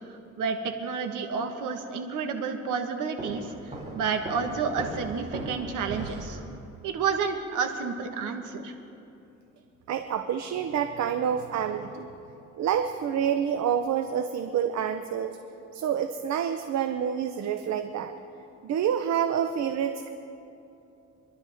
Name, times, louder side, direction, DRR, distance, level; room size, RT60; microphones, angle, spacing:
voice 1, 0.0-6.4 6.8-8.7, right 5 dB, 85° right, 5 dB, 1.5 m, -30 dB
Walk footsteps, 3.2-6.5, right 1 dB, 25° right, 3.3 m, -38 dB
voice 2, 9.9-12.1 12.6-15.4 15.7-18.1 18.6-20.1, right 8 dB, 65° right, 7 dB, 0.8 m, -28 dB
26.0 x 11.5 x 3.6 m, 2.8 s
cardioid pair, 90°, 30 cm